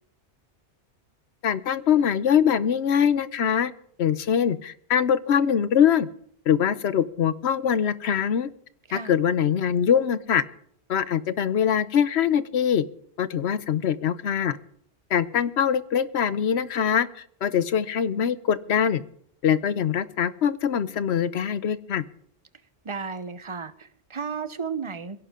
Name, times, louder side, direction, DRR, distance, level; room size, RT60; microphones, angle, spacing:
voice 1, 1.4-3.7 4.0-6.1 6.5-8.5 8.9-10.4 10.9-12.8 13.2-14.6 15.1-19.0 19.4-22.0, left 8 dB, 75° left, 1.0 m, -23 dB
voice 2, 22.8-25.2, right 5 dB, 30° right, 0.8 m, -34 dB
21.5 x 17.0 x 3.7 m
omnidirectional pair, 1.1 m